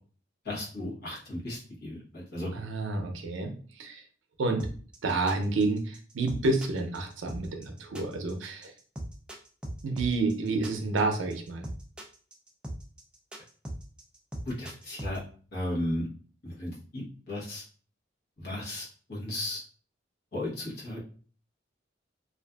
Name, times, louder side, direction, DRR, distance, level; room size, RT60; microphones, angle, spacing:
voice 1, 0.4-2.5 14.4-15.2 15.5-16.1 16.4-17.6 18.4-19.6 20.3-21.0, left 1 dB, 55° left, -6 dB, 1.0 m, -35 dB
voice 2, 2.5-4.0 4.4-4.7 5.0-8.7 9.8-11.6, right 3 dB, 85° right, 4 dB, 0.5 m, -29 dB
sound 1, 4.6-15.2, right 1 dB, 5° right, 0.3 m, -39 dB
2.5 x 2.4 x 2.2 m, 0.42 s
head